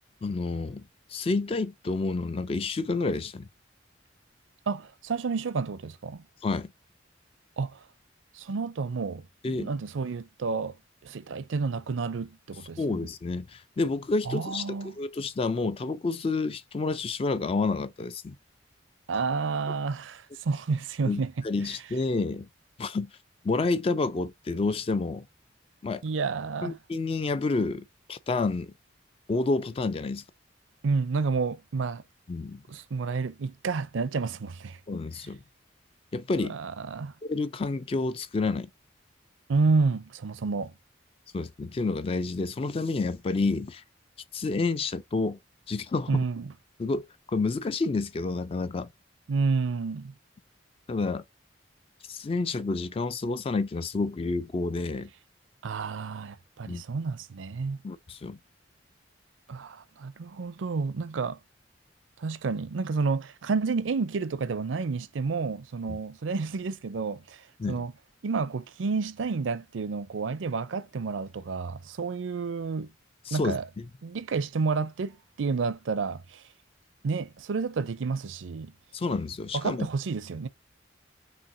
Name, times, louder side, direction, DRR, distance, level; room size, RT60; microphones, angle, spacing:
voice 1, 0.2-0.8 1.1-3.5 6.4-6.7 9.4-9.7 12.8-18.4 21.1-22.5 22.8-23.1 23.4-25.3 25.8-26.0 26.6-28.7 29.3-30.2 32.3-32.6 34.9-35.4 36.1-36.6 37.2-38.7 41.3-43.8 44.3-45.4 45.7-46.1 46.8-47.0 47.3-48.9 50.9-51.2 52.1-55.1 56.7-56.8 57.8-58.4 65.9-66.0 67.6-67.8 73.3-73.6 78.9-79.9, left 3 dB, 30° left, 0.3 m, -29 dB
voice 2, 4.7-6.2 7.6-7.8 8.3-10.8 11.0-13.1 14.3-15.0 19.1-21.3 26.0-26.8 30.8-32.0 32.7-34.8 36.4-37.1 39.5-40.7 46.1-46.5 49.3-50.1 55.6-57.8 59.5-61.4 62.2-67.9 68.2-72.9 73.3-73.7 74.0-76.4 77.0-78.7 79.5-80.5, right 4 dB, 85° right, 0.5 m, -30 dB
5.7 x 2.7 x 2.6 m
head